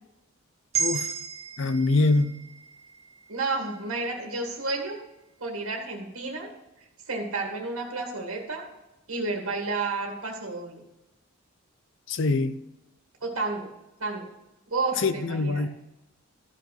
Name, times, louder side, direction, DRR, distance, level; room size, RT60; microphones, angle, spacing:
sound 1, 0.7-5.0, right 6 dB, 30° right, 1.4 m, -35 dB
voice 1, 1.6-2.4 12.1-12.5 15.0-15.7, left 3 dB, 60° left, 0.5 m, -24 dB
voice 2, 3.3-5.0 5.4-6.5 7.1-8.7 9.1-10.8 13.2-13.7 14.0-14.3 14.7-15.6, right 3 dB, 80° right, 1.9 m, -31 dB
13.5 x 5.8 x 5.8 m
head